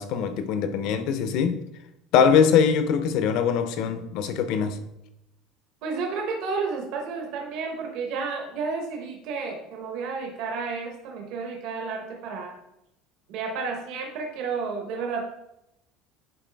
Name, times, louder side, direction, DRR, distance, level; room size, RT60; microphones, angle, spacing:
voice 1, 0.0-1.6 2.1-4.8, left 7 dB, 50° left, 0.6 m, -22 dB
voice 2, 5.8-12.6 13.3-15.3, right 4 dB, 55° right, 1.0 m, -31 dB
10.0 x 3.9 x 3.4 m
cardioid pair, 175°, 0 cm